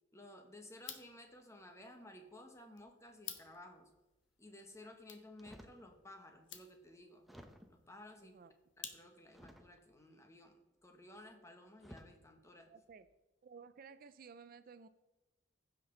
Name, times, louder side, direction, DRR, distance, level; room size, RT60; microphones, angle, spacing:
voice 1, 0.1-3.9 4.4-7.3 7.7-8.4 8.8-12.7, left 1 dB, 15° left, 4 dB, 1.1 m, -56 dB
sound 1, 0.7-9.4, left 9 dB, 85° left, 1.1 m, -55 dB
sound 2, 5.4-5.9 6.5-6.6 7.2-7.9 9.3-10.0 11.2-11.3 11.8-12.2 12.9-13.2, equal, ahead, 0.7 m, -56 dB
voice 2, 8.2-8.5 12.7-13.1 13.4-14.9, right 5 dB, 50° right, 13 dB, 0.4 m, -55 dB
15.5 x 6.0 x 3.8 m, 1.0 s
head